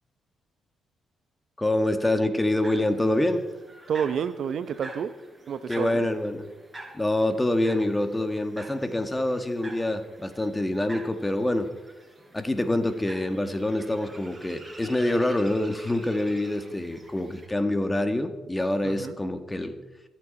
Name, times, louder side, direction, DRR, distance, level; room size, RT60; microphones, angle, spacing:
voice 1, 1.6-3.4 5.7-6.5 6.9-11.7 12.3-19.7, left 1 dB, 15° left, 7 dB, 2.0 m, -26 dB
sound 1, 2.4-17.5, right 2 dB, 20° right, 5.0 m, -47 dB
voice 2, 3.9-5.1 5.5-6.1 18.8-19.2, right 7 dB, 65° right, 13 dB, 0.8 m, -29 dB
24.5 x 8.6 x 4.3 m, 1.1 s
hypercardioid pair, 50°, 0 cm